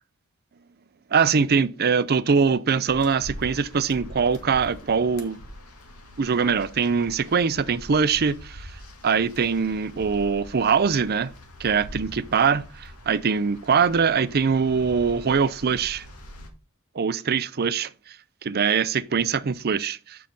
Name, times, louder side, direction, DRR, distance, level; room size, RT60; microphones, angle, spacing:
voice 1, 1.1-5.4 6.2-8.7 9.0-11.3 11.6-16.1 17.0-17.9 18.4-20.2, right 6 dB, 45° right, 0.5 m, -22 dB
sound 1, 2.9-16.5, left 1 dB, 90° left, 2.0 m, -43 dB
7.4 x 5.7 x 5.3 m
head